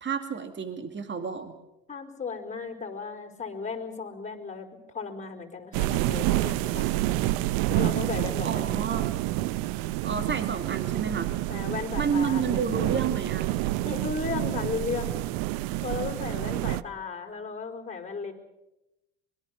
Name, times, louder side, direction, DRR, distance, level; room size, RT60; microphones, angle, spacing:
voice 1, 0.0-1.5 8.4-9.1 10.0-11.3 12.0-13.5, right 6 dB, 30° right, 8 dB, 2.5 m, -30 dB
voice 2, 1.9-4.7 4.9-7.4 7.7-8.8 11.5-13.0 13.8-15.2 15.8-18.3, left 5 dB, 20° left, 4 dB, 4.5 m, -35 dB
sound 1, 5.7-16.8, right 16 dB, 65° right, 0.9 m, -28 dB
25.0 x 22.0 x 6.5 m, 0.92 s
hypercardioid pair, 85°, 37 cm